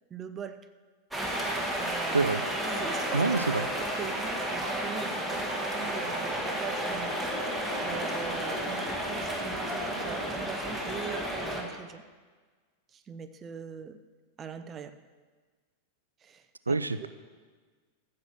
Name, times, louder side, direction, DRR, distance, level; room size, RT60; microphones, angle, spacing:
voice 1, 0.1-0.6 1.7-2.3 2.7-3.3 3.8-7.2 7.8-12.0 12.9-14.0 14.4-14.9 16.2-17.1, right 6 dB, 25° right, 10 dB, 0.8 m, -42 dB
sound 1, 1.1-11.6, right 1 dB, ahead, 2.0 m, -32 dB
sound 2, 2.1-11.7, left 1 dB, 50° left, 4.4 m, -41 dB
voice 2, 3.1-3.7 16.7-17.1, right 3 dB, 80° right, 13 dB, 0.5 m, -26 dB
14.5 x 7.4 x 6.3 m, 1.5 s
figure-of-eight pair, 90°, 0 cm